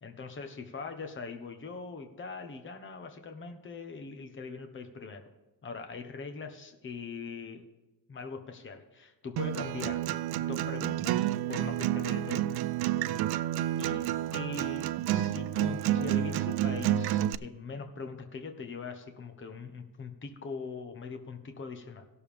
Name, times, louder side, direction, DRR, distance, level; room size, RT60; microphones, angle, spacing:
voice 1, 0.0-5.3 5.6-7.7 8.1-10.1 10.5-12.5 13.8-14.0 14.3-22.1, left 4 dB, 30° left, 5 dB, 1.2 m, -41 dB
Acoustic guitar, 9.4-17.3, right 12 dB, 80° right, 0.5 m, -30 dB
17.5 x 6.9 x 3.5 m, 1.1 s
cardioid pair, 125°, 37 cm